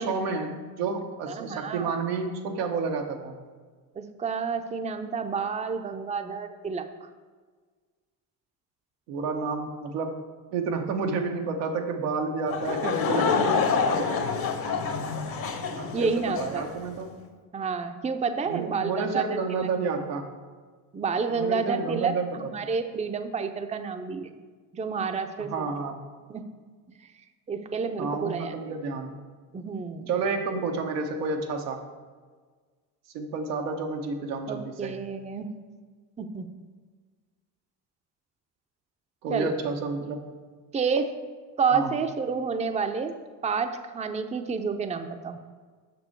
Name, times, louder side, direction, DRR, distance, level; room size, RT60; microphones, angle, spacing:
voice 1, 0.0-3.4 9.1-10.2 10.5-14.1 15.8-17.2 18.5-20.3 21.3-22.7 25.4-26.0 28.0-29.2 30.1-31.8 33.1-35.0 39.2-40.3 41.7-42.0, right 4 dB, 85° right, 3 dB, 1.0 m, -30 dB
voice 2, 1.3-1.9 4.0-6.9 15.9-16.6 17.5-19.2 19.6-19.7 20.9-24.3 24.7-25.7 26.3-26.4 27.5-28.5 29.5-30.1 34.5-35.5 36.2-36.5 39.3-39.5 40.7-41.1 41.6-43.2 43.4-45.4, right 5 dB, 15° right, 7 dB, 0.6 m, -29 dB
Laughter / Crowd, 12.5-16.7, left 5 dB, 50° left, 1.2 m, -27 dB
6.9 x 6.2 x 4.5 m, 1.5 s
hypercardioid pair, 65°, 46 cm